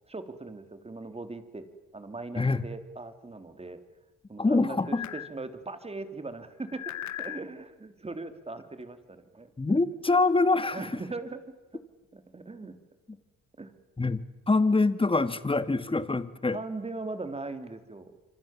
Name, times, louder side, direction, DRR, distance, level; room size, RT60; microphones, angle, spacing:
voice 1, 0.1-1.6 1.9-3.8 4.3-6.9 7.2-9.8 10.7-11.4 12.1-12.8 13.6-13.7 16.5-18.1, right 3 dB, 20° right, 9 dB, 3.5 m, -39 dB
voice 2, 4.4-5.1 9.6-11.0 14.0-16.6, left 3 dB, 15° left, 13 dB, 1.9 m, -25 dB
sound 1, 4.9-5.3 6.6-7.4, left 12 dB, 65° left, 1.1 m, -38 dB
27.0 x 26.0 x 7.3 m, 1.1 s
cardioid pair, 90°, 30 cm